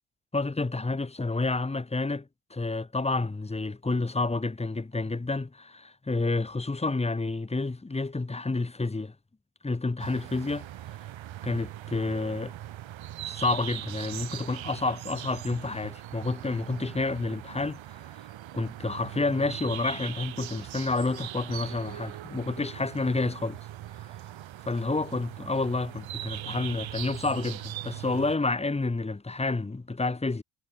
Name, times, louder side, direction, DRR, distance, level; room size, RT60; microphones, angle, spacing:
voice 1, 0.3-9.1 9.6-10.6 11.4-12.5 13.3-17.8 18.5-23.6 24.7-30.4, left 3 dB, 10° left, 1.7 m, -29 dB
sound 1, 10.0-28.4, right 13 dB, 65° right, 4.6 m, -40 dB
cardioid pair, 95°, 49 cm